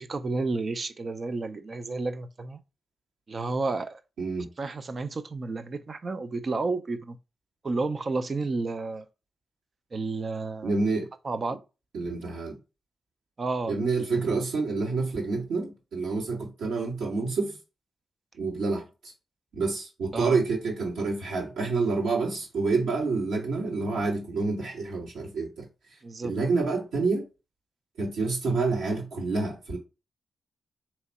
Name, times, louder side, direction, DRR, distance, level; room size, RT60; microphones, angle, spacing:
voice 1, 0.0-2.6 3.3-4.0 4.6-7.2 7.6-9.1 9.9-10.7 11.2-11.6 13.4-13.8 20.1-20.4 26.0-26.3, right 3 dB, 50° right, 0.5 m, -31 dB
voice 2, 4.2-4.5 10.6-11.1 11.9-12.6 13.7-17.6 18.4-18.8 19.5-25.7 26.2-27.3 28.0-29.8, right 3 dB, 80° right, 1.8 m, -28 dB
3.5 x 3.1 x 4.2 m
supercardioid pair, 45°, 0 cm